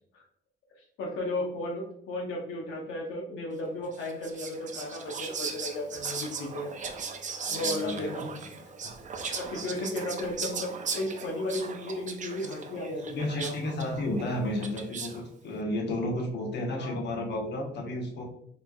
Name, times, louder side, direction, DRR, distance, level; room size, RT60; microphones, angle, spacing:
voice 1, 0.8-6.7 7.5-8.3 9.3-13.5 16.8-16.9, left 1 dB, 85° left, -2 dB, 0.8 m, -34 dB
Whispering, 3.9-15.2, right 5 dB, 40° right, 0.5 m, -38 dB
voice 2, 7.4-8.1 13.1-18.2, left 1 dB, 60° left, 0 dB, 1.0 m, -32 dB
4.2 x 3.3 x 2.3 m, 0.71 s
cardioid pair, 90°, 20 cm